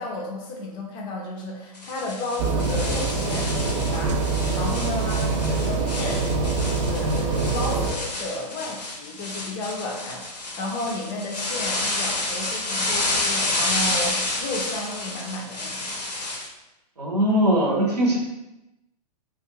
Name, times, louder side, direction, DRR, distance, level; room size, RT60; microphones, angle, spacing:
voice 1, 0.0-6.3 6.6-16.0, left 2 dB, 20° left, -1 dB, 0.4 m, -33 dB
sound 1, 1.7-16.5, left 2 dB, 85° left, 0.5 m, -30 dB
sound 2, 2.4-7.9, right 3 dB, 50° right, 0.4 m, -24 dB
voice 2, 17.0-18.2, equal, 70° right, -2 dB, 0.9 m, -20 dB
2.4 x 2.3 x 2.8 m, 0.94 s
figure-of-eight pair, 110°, 21 cm